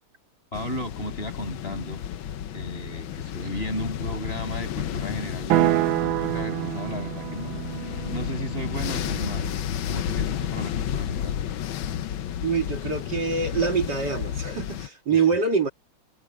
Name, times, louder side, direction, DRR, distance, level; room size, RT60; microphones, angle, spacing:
sound 1, 0.5-14.9, left 10 dB, 80° left, 1.7 m, -32 dB
voice 1, 0.5-2.0 2.5-9.6 9.9-11.4 15.1-15.2, left 1 dB, 30° left, 7.7 m, -35 dB
sound 2, 5.5-9.6, right 15 dB, 80° right, 1.4 m, -27 dB
voice 2, 12.4-15.7, right 5 dB, 55° right, 2.8 m, -25 dB
omnidirectional pair, 2.2 m